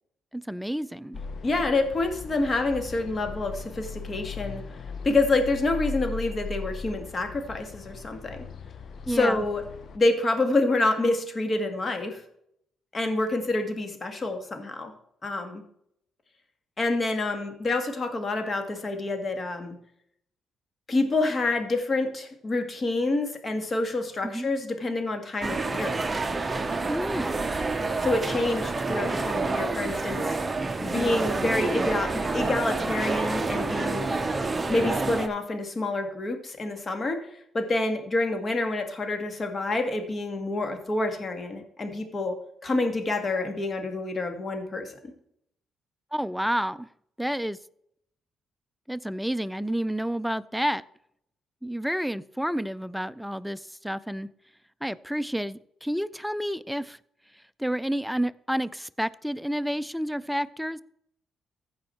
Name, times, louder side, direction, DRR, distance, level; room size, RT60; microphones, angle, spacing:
voice 1, 0.3-1.2 9.1-9.4 24.2-24.5 26.9-27.4 46.1-46.9 47.2-47.6 48.9-50.8 51.6-54.3 54.8-57.0 57.6-60.8, equal, ahead, 16 dB, 0.4 m, -30 dB
sound 1, 1.1-10.0, left 4 dB, 55° left, 1.0 m, -38 dB
voice 2, 1.4-4.6 5.0-8.4 9.1-9.6 9.9-12.2 12.9-14.9 15.2-15.6 16.8-19.7 20.9-25.9 28.0-30.3 30.8-34.1 34.7-37.2 37.5-42.3 42.6-44.9, left 2 dB, 35° left, 6 dB, 2.0 m, -27 dB
sound 2, 25.4-35.3, right 3 dB, 25° right, 0.9 m, -28 dB
15.0 x 5.2 x 4.4 m, 0.71 s
cardioid pair, 90°, 0 cm